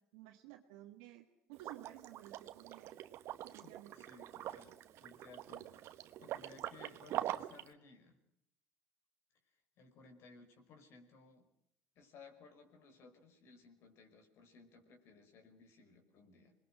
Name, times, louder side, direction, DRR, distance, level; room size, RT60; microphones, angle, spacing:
voice 1, 0.0-3.0 3.4-4.1, right 14 dB, 90° right, 0 dB, 1.8 m, -55 dB
Liquid, 1.5-7.7, right 13 dB, 65° right, 1.3 m, -44 dB
voice 2, 3.6-8.2 9.8-11.5 12.0-16.6, left 4 dB, 60° left, 5 dB, 5.5 m, -60 dB
27.0 x 21.0 x 6.4 m, 0.77 s
supercardioid pair, 95°, 5 cm